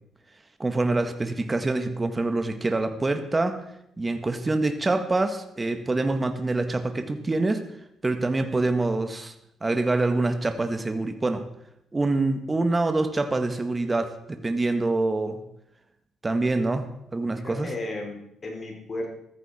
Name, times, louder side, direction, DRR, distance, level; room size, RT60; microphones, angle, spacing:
voice 1, 0.6-3.6 4.0-7.7 8.0-9.3 9.6-11.5 11.9-15.4 16.2-17.7, right 2 dB, 20° right, 8 dB, 1.7 m, -25 dB
voice 2, 17.3-19.1, left 2 dB, 35° left, 1 dB, 4.8 m, -34 dB
15.0 x 14.0 x 4.5 m, 0.77 s
cardioid pair, 90°, 0 cm